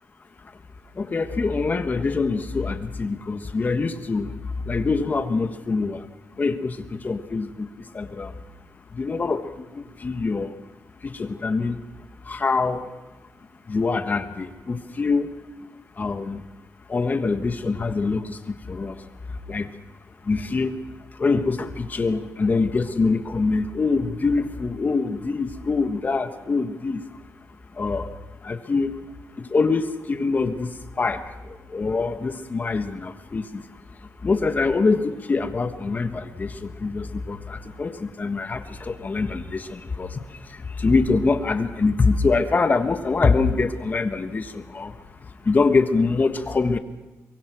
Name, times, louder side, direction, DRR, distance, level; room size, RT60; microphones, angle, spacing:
voice 1, 1.0-4.3 4.7-6.0 6.4-7.7 7.9-8.3 8.9-10.5 11.0-11.8 12.3-12.8 13.7-15.3 16.0-16.4 16.9-19.0 19.5-19.7 20.3-20.8 21.2-27.0 27.8-28.1 28.4-28.9 29.4-31.2 31.7-33.6 34.2-40.2 40.8-44.9 45.4-46.8, left 4 dB, 35° left, 9 dB, 1.4 m, -24 dB
23.5 x 23.0 x 6.2 m, 1.1 s
wide cardioid pair, 130°, 5 cm